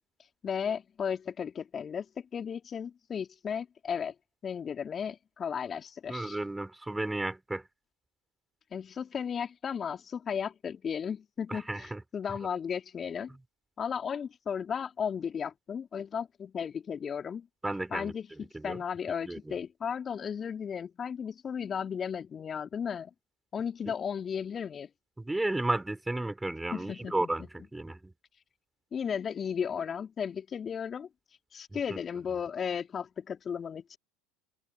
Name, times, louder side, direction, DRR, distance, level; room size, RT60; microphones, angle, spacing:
voice 1, 0.4-4.1 4.4-6.4 8.7-13.3 13.8-17.5 17.9-23.1 23.5-24.9 26.7-27.3 28.9-31.1 31.5-34.0, left 7 dB, 35° left, 3.4 m, -35 dB
voice 2, 6.1-7.6 11.5-12.0 17.6-18.1 18.5-18.8 19.3-19.6 23.8-23.9 25.2-28.1 31.7-32.0, right 2 dB, 10° right, 6.7 m, -33 dB
hypercardioid pair, 75°, 0 cm